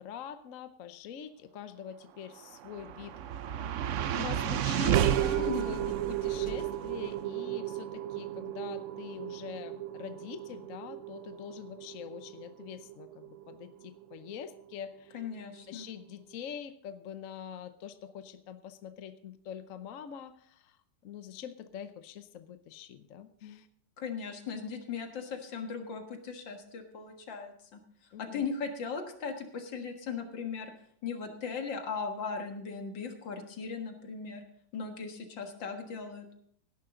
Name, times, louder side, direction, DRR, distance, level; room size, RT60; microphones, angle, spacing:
voice 1, 0.0-3.2 4.1-15.3 15.7-20.8 21.0-23.7 28.1-28.5, left 8 dB, 55° left, 10 dB, 1.0 m, -44 dB
sound 1, 2.4-14.7, right 10 dB, 90° right, 0.6 m, -33 dB
voice 2, 5.4-5.8 15.1-15.9 24.0-27.8 28.2-30.7 31.0-34.4 34.7-36.3, left 5 dB, 75° left, 5 dB, 2.3 m, -38 dB
17.0 x 10.5 x 3.8 m, 0.65 s
omnidirectional pair, 2.1 m